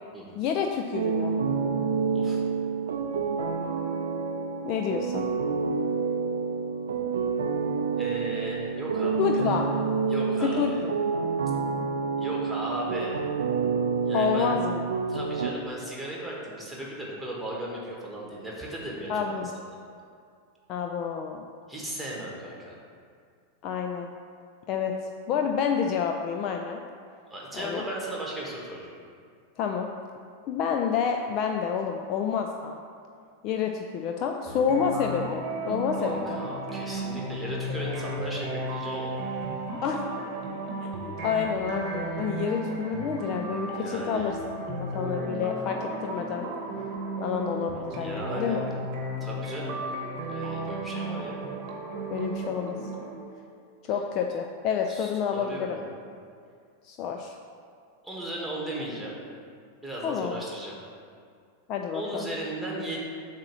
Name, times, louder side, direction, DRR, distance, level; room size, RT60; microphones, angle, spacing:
voice 1, 0.4-1.4 4.6-5.3 9.2-9.7 10.4-10.9 14.1-14.9 19.1-19.5 20.7-21.5 23.6-24.1 24.7-25.0 25.3-26.8 27.5-27.8 29.6-29.9 30.5-32.8 33.4-36.4 39.8-40.0 41.0-44.4 44.7-46.5 47.2-48.6 52.1-52.8 53.8-55.8 56.8-57.3 60.0-60.4 61.7-62.2, left 7 dB, 40° left, 3 dB, 0.4 m, -29 dB
sound 1, 0.9-15.5, right 5 dB, 65° right, 0.4 m, -28 dB
voice 2, 8.0-9.6 10.1-10.9 12.2-13.3 14.0-14.5 15.1-19.8 21.7-22.8 27.3-28.9 36.0-39.2 43.7-44.3 48.0-48.6 49.2-49.8 50.3-51.4 54.9-55.8 58.0-59.1 59.8-60.8 61.9-63.0, right 1 dB, ahead, -5 dB, 1.6 m, -36 dB
sound 2, 34.5-53.2, right 2 dB, 40° right, 1.0 m, -34 dB
7.4 x 3.0 x 5.9 m, 2.2 s
figure-of-eight pair, 90°, 0 cm